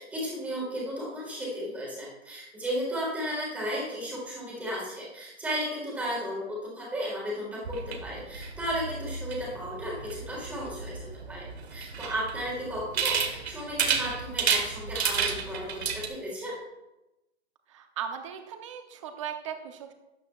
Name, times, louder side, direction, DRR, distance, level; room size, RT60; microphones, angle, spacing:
voice 1, 0.0-11.4 11.7-16.6, equal, 5° right, -4 dB, 1.7 m, -34 dB
sound 1, 7.6-16.1, right 6 dB, 70° right, 1.4 m, -32 dB
voice 2, 17.7-19.9, right 8 dB, 30° right, 6 dB, 0.7 m, -38 dB
12.5 x 8.6 x 2.4 m, 0.97 s
hypercardioid pair, 170°, 33 cm